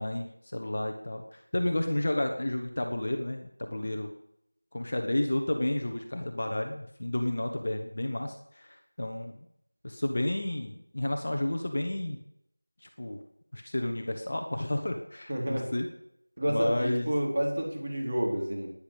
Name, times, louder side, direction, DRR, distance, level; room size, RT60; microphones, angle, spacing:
voice 1, 0.0-4.1 4.7-9.4 9.8-12.2 12.8-13.2 13.5-15.9 16.5-17.1, left 1 dB, 30° left, 4 dB, 1.4 m, -31 dB
voice 2, 15.3-15.7 16.4-18.7, right 1 dB, 25° right, 0 dB, 4.0 m, -30 dB
11.5 x 10.0 x 10.0 m, 0.78 s
figure-of-eight pair, 175°, 0 cm